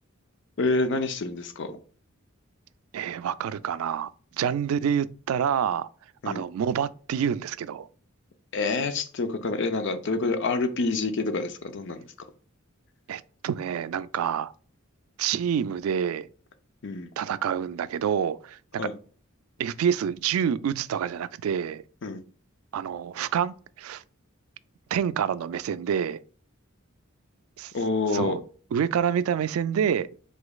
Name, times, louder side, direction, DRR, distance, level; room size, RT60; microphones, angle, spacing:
voice 1, 0.6-1.8 6.2-6.4 8.5-12.0 16.8-17.1 18.8-18.9 22.0-22.2 27.7-28.4, left 3 dB, 60° left, 0.6 m, -27 dB
voice 2, 2.9-5.9 6.2-7.9 13.1-14.5 15.2-16.3 17.2-18.8 19.6-21.8 22.7-24.0 24.9-26.2 27.6-27.7 28.1-28.4 28.7-30.1, right 8 dB, 85° right, 0.3 m, -27 dB
4.9 x 3.9 x 2.3 m
head